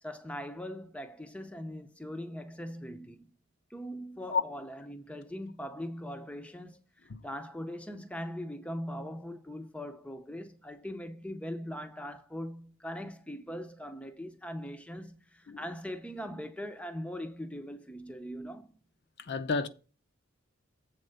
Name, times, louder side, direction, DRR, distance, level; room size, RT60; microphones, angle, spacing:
voice 1, 0.0-3.3 3.7-18.7, equal, 5° left, 0.5 m, -41 dB
voice 2, 19.2-19.7, left 5 dB, 50° left, 0.6 m, -30 dB
7.6 x 4.2 x 6.6 m
head